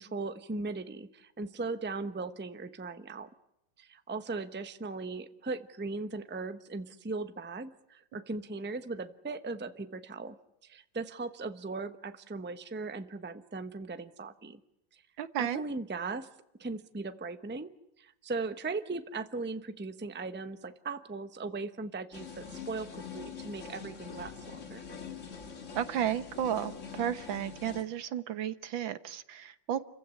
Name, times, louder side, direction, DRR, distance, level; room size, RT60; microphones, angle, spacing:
voice 1, 0.0-3.3 3.8-10.4 10.6-14.6 14.9-15.0 15.4-16.3 16.6-17.7 18.0-24.8, right 3 dB, 10° right, 11 dB, 0.7 m, -38 dB
voice 2, 15.2-15.6 25.8-29.9, right 10 dB, 80° right, 13 dB, 1.9 m, -33 dB
sound 1, 22.1-27.8, left 6 dB, 40° left, 2.1 m, -44 dB
29.5 x 15.5 x 9.7 m, 0.84 s
omnidirectional pair, 2.1 m